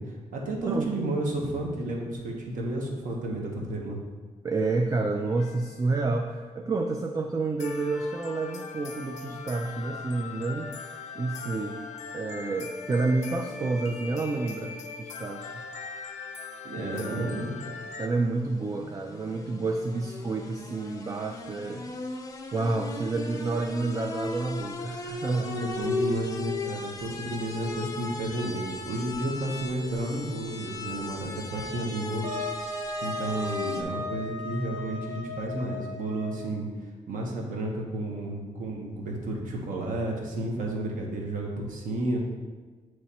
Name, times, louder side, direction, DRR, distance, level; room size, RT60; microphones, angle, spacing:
voice 1, 0.0-4.0 16.6-17.6 25.4-32.3 33.0-36.7 37.1-42.2, right 1 dB, 85° right, -1 dB, 1.1 m, -32 dB
voice 2, 4.4-10.7 11.2-11.8 12.1-15.6 16.8-17.4 18.0-21.9 22.5-25.9, right 3 dB, 25° right, 3 dB, 0.3 m, -29 dB
sound 1, 5.4-6.0 7.6-18.1, left 5 dB, 65° left, 0.5 m, -40 dB
sound 2, 17.1-33.8, left 3 dB, 25° left, 0.6 m, -37 dB
Wind instrument woodwind instrument, 32.2-36.6, left 2 dB, 65° right, 0.9 m, -36 dB
8.9 x 3.2 x 4.2 m, 1.4 s
wide cardioid pair, 150°, 13 cm